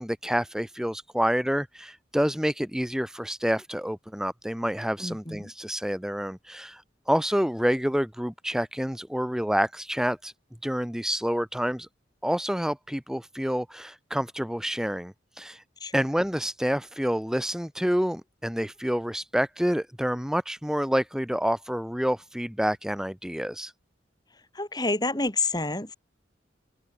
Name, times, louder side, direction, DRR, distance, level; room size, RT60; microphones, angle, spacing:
voice 1, 0.0-10.3 10.6-11.9 12.2-15.6 15.9-23.7, equal, 5° right, 0.9 m, -28 dB
voice 2, 5.0-5.5 15.8-16.0 24.5-25.9, left 3 dB, 20° left, 3.3 m, -28 dB
open air
head